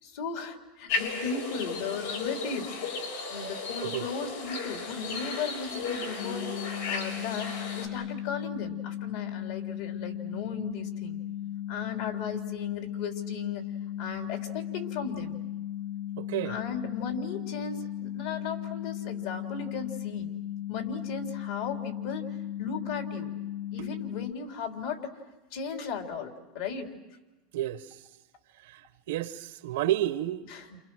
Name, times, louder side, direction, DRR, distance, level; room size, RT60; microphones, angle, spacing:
voice 1, 0.0-3.0 3.3-6.6 6.9-11.2 11.7-13.6 14.0-15.4 16.4-20.3 20.7-23.4 23.7-25.2 25.5-26.9 30.4-30.8, left 5 dB, 70° left, 3.6 m, -36 dB
sound 1, 0.9-7.9, left 4 dB, 90° left, 6.5 m, -35 dB
sound 2, 6.2-24.3, left 12 dB, 55° left, 0.8 m, -36 dB
voice 2, 16.2-16.5 23.8-23.9 27.5-28.0 28.6-28.8 29.1-30.4, right 13 dB, 85° right, 1.2 m, -31 dB
29.5 x 28.5 x 6.3 m
supercardioid pair, 140°, 0 cm